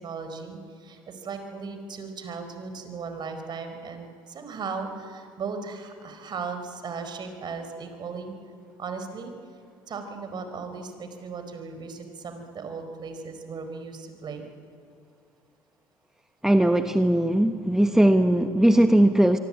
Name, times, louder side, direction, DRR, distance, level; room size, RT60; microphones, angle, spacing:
voice 1, 0.0-8.3 8.8-9.3 9.9-14.5, right 5 dB, 45° right, 7 dB, 4.7 m, -37 dB
voice 2, 16.4-19.4, right 1 dB, 5° right, 8 dB, 1.2 m, -19 dB
24.5 x 24.0 x 8.9 m, 2.3 s
hypercardioid pair, 70°, 11 cm